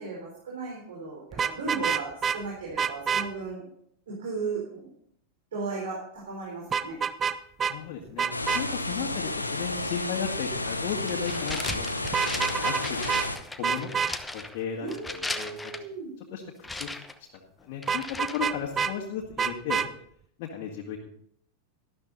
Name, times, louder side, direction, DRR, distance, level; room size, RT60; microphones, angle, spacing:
voice 1, 0.0-3.6 4.1-4.9 5.5-7.0 14.8-16.1, right 4 dB, 60° right, -3 dB, 4.0 m, -36 dB
Vehicle horn car horn honking, 1.3-2.4 2.8-3.3 6.7-7.3 7.6-7.7 8.2-8.6 12.0-12.8 13.1-13.3 13.6-14.1 17.9-18.9 19.4-19.9, right 6 dB, 20° right, 0.7 m, -26 dB
voice 2, 7.6-8.3 8.5-11.9 12.2-13.2 13.5-13.9 14.3-14.9 15.1-15.7 16.2-16.4 16.7-17.0 17.6-18.0 18.3-19.8 20.4-21.0, left 7 dB, 45° left, -1 dB, 2.1 m, -35 dB
sound 1, 8.3-13.4, left 2 dB, 85° left, 1.1 m, -32 dB
sound 2, 10.5-15.8 16.6-18.7, left 2 dB, 10° left, 1.0 m, -37 dB
13.0 x 12.5 x 4.1 m, 0.68 s
figure-of-eight pair, 90°, 0 cm